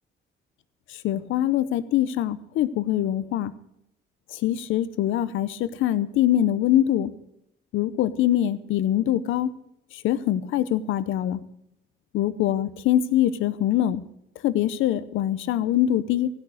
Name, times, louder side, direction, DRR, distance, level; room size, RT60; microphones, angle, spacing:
voice 1, 1.0-3.5 4.3-7.1 7.7-9.5 9.9-11.4 12.1-14.0 14.4-16.3, left 12 dB, 90° left, 15 dB, 0.8 m, -23 dB
15.5 x 6.4 x 8.0 m, 0.80 s
cardioid pair, 90°, 20 cm